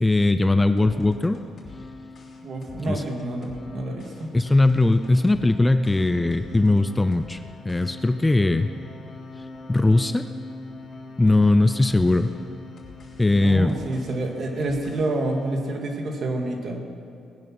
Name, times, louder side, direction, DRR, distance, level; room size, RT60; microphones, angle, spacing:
voice 1, 0.0-1.4 2.9-3.0 4.3-7.4 7.6-8.7 9.7-10.3 11.2-12.3 13.2-13.8, left 2 dB, 15° left, 10 dB, 0.6 m, -19 dB
sound 1, 0.8-15.6, left 3 dB, 50° left, 3.3 m, -42 dB
voice 2, 2.4-4.3 13.4-16.9, right 2 dB, 55° right, 2 dB, 2.3 m, -28 dB
19.0 x 11.0 x 6.1 m, 2.5 s
cardioid pair, 90°, 0 cm